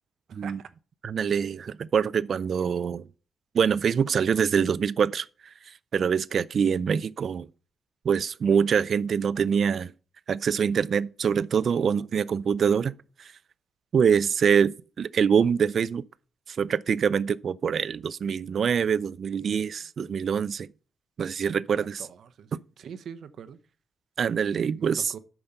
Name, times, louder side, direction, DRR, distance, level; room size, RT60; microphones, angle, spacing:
voice 1, 0.3-0.7 21.5-23.6 24.8-25.2, right 7 dB, 65° right, 0.7 m, -44 dB
voice 2, 1.0-3.0 3.5-5.3 5.9-7.5 8.0-9.9 10.3-12.9 13.9-16.0 16.5-20.7 21.2-22.0 24.2-25.1, right 7 dB, 50° right, 0.3 m, -24 dB
8.7 x 5.9 x 5.4 m
cardioid pair, 135°, 0 cm